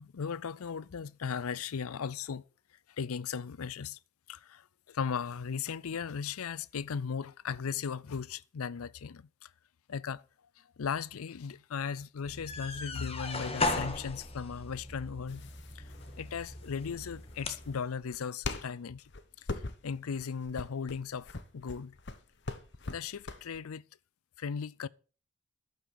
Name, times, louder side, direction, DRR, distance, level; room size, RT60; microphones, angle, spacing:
voice 1, 0.0-2.4 3.0-4.0 4.3-9.5 9.9-10.2 10.6-15.5 15.7-15.9 16.2-19.1 19.4-21.9 22.9-23.8 24.4-24.9, left 6 dB, 85° left, 0.5 m, -37 dB
sound 1, 12.2-17.8, left 2 dB, 25° left, 1.5 m, -37 dB
sound 2, 15.3-23.6, left 3 dB, 50° left, 1.1 m, -42 dB
11.5 x 8.2 x 6.4 m
head